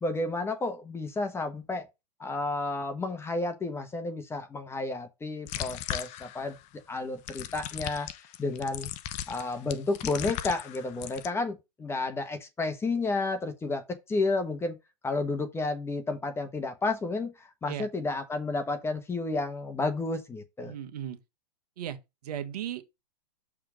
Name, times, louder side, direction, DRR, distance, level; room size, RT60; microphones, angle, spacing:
voice 1, 0.0-1.9 2.2-6.6 6.9-8.1 8.4-8.9 9.3-14.8 15.0-20.7, left 3 dB, 10° left, 1.2 m, -31 dB
sound 1, 5.5-6.6 7.3-11.3, left 12 dB, 35° left, 0.7 m, -37 dB
voice 2, 20.6-21.2 21.8-22.0 22.2-22.8, right 10 dB, 65° right, 1.4 m, -36 dB
6.6 x 3.7 x 6.2 m
hypercardioid pair, 125°, 21 cm